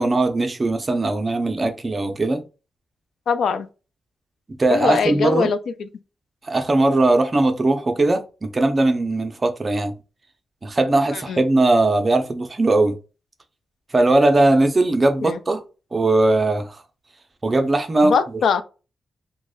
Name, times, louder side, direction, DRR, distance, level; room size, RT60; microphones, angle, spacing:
voice 1, 0.0-2.4 4.6-5.5 6.4-10.0 10.6-13.0 13.9-15.6 15.9-16.8 17.4-18.1, right 2 dB, 25° right, 0.4 m, -19 dB
voice 2, 3.3-3.7 4.7-5.9 11.1-11.4 15.2-15.4 18.0-18.6, left 6 dB, 75° left, 0.3 m, -22 dB
3.1 x 2.1 x 3.6 m
wide cardioid pair, 155°, 0 cm